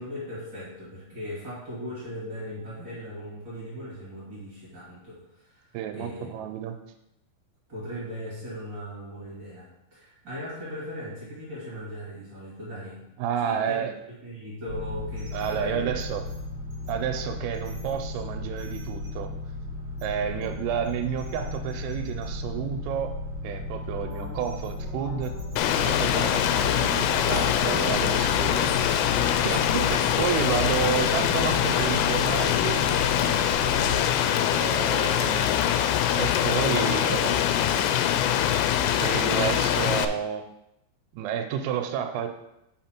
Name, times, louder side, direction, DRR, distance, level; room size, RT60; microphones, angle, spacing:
voice 1, 0.0-6.3 7.7-13.0 13.4-13.8 14.2-16.2, equal, 45° right, -8 dB, 1.5 m, -38 dB
voice 2, 5.7-6.8 13.2-13.9 15.3-16.2 16.9-19.3 20.0-23.1 23.4-25.4 25.8-29.1 29.5-32.9 34.5-35.5 36.2-38.3 39.0-40.4 41.1-42.3, right 8 dB, 90° right, 7 dB, 3.3 m, -31 dB
sound 1, 14.7-34.0, left 2 dB, 65° right, 1.9 m, -35 dB
sound 2, 24.0-34.1, equal, 20° left, 2.0 m, -42 dB
Rain, 25.6-40.1, left 10 dB, 85° left, 3.1 m, -23 dB
6.6 x 5.7 x 4.4 m, 0.83 s
omnidirectional pair, 5.8 m